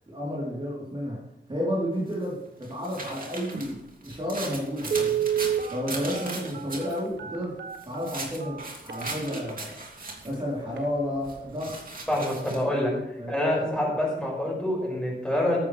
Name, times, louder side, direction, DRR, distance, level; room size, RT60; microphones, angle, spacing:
voice 1, 0.1-1.2 1.5-3.8 4.0-5.2 5.7-7.5 7.8-8.6 8.8-9.7 10.2-11.8 12.3-12.4 12.7-13.5, equal, 25° right, -6 dB, 3.6 m, -31 dB
sound 1, 2.1-7.0 7.7-10.4 11.3-12.6, right 2 dB, 45° right, 2.8 m, -38 dB
Telephone, 4.1-4.2 4.8-9.7 10.2-10.3 10.7-10.9 11.2-11.5 11.9-12.0, right 8 dB, 65° right, 1.4 m, -30 dB
voice 2, 12.1-12.9 13.3-15.6, left 1 dB, 5° left, -4 dB, 6.0 m, -26 dB
14.5 x 12.0 x 3.4 m, 0.84 s
wide cardioid pair, 125°, 20 cm